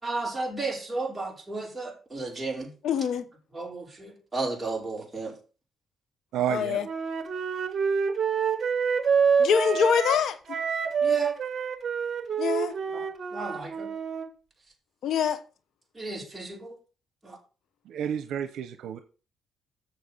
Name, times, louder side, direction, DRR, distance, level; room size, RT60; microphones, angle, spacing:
voice 1, 0.0-2.7 3.5-5.4 11.0-11.3 12.9-13.9 15.9-16.8 17.2-17.4, right 3 dB, 10° right, 5.5 m, -33 dB
voice 2, 2.8-3.2 6.5-6.9 9.4-10.6 12.4-12.7 15.0-15.4, left 7 dB, 70° left, 1.1 m, -25 dB
voice 3, 6.3-6.8 17.9-19.0, right 10 dB, 80° right, 0.8 m, -30 dB
Wind instrument woodwind instrument, 6.8-14.3, right 6 dB, 45° right, 1.4 m, -27 dB
7.9 x 7.3 x 5.6 m
cardioid pair, 90°, 0 cm